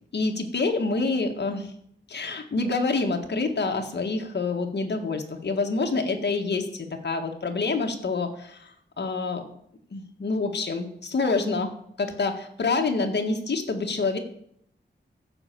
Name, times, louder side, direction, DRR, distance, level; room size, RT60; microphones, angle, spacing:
voice 1, 0.1-1.7 2.1-9.4 9.9-11.7 12.0-14.2, left 3 dB, 65° left, 4 dB, 1.7 m, -27 dB
14.0 x 5.6 x 7.5 m, 0.70 s
wide cardioid pair, 125°, 19 cm